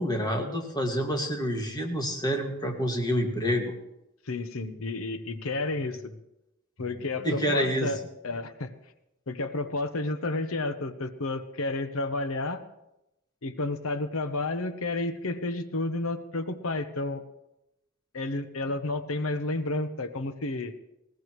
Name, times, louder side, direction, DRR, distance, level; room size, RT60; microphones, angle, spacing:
voice 1, 0.0-3.7 7.2-7.9, equal, 20° left, 2 dB, 2.1 m, -28 dB
voice 2, 4.2-6.2 6.8-8.7 9.3-12.6 13.4-17.2 18.1-20.7, left 2 dB, 70° left, 10 dB, 1.0 m, -31 dB
20.5 x 17.0 x 3.2 m, 0.89 s
head